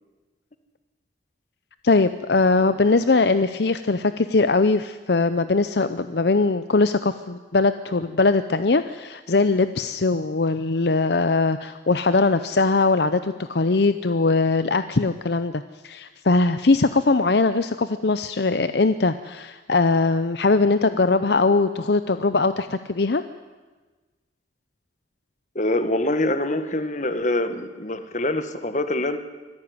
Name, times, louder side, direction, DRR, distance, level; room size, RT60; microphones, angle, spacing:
voice 1, 1.8-23.2, left 3 dB, 65° left, 12 dB, 0.7 m, -21 dB
voice 2, 25.5-29.2, left 1 dB, 40° left, 10 dB, 1.6 m, -24 dB
25.0 x 15.0 x 9.6 m, 1.3 s
head